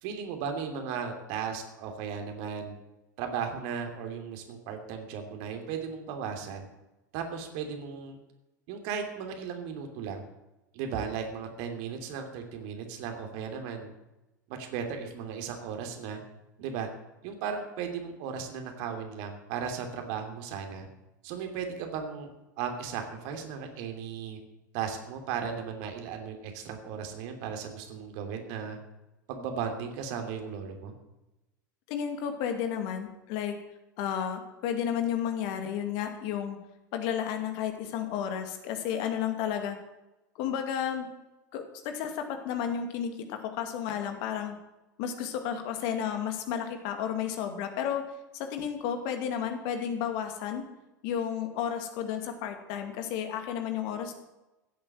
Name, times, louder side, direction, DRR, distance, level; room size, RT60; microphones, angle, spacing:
voice 1, 0.0-2.7 3.2-6.7 7.1-8.2 8.7-10.3 10.7-13.9 14.5-16.2 16.6-16.9 17.2-20.9 21.2-22.3 22.6-24.4 24.7-28.8 29.3-30.9, right 7 dB, 55° right, 5 dB, 3.0 m, -36 dB
voice 2, 31.9-33.6 34.0-36.6 36.9-39.8 40.3-41.1 41.5-44.5 45.0-48.0 48.3-50.6 51.0-54.1, left 8 dB, 50° left, 6 dB, 2.4 m, -32 dB
16.0 x 8.8 x 7.6 m, 1.0 s
figure-of-eight pair, 80°, 10 cm